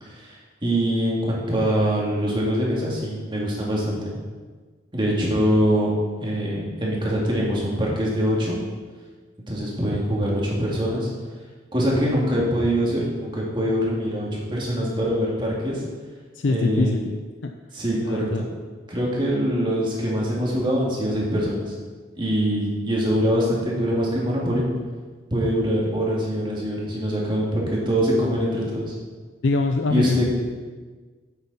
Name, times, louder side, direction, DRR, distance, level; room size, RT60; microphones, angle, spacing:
voice 1, 0.0-4.1 4.9-5.9 6.2-8.6 9.5-11.1 11.7-15.8 16.5-16.9 17.7-18.5 18.9-21.7 22.2-24.7 25.3-28.9 29.9-30.3, equal, 25° right, -4 dB, 2.2 m, -23 dB
voice 2, 16.4-17.5 18.0-18.4 29.4-30.2, left 3 dB, 75° left, 5 dB, 0.5 m, -24 dB
9.7 x 8.0 x 4.1 m, 1.4 s
head